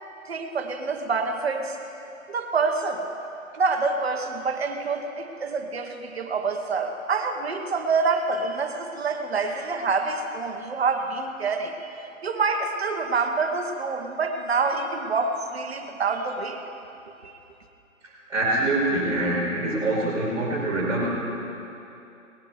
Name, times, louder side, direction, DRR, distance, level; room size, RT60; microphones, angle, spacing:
voice 1, 0.3-1.8 2.3-3.1 3.6-16.6 17.2-17.3, right 4 dB, 50° right, 5 dB, 1.3 m, -27 dB
voice 2, 18.3-21.1, right 2 dB, 10° right, -12 dB, 3.3 m, -24 dB
19.0 x 9.7 x 4.8 m, 2.8 s
hypercardioid pair, 170°, 40 cm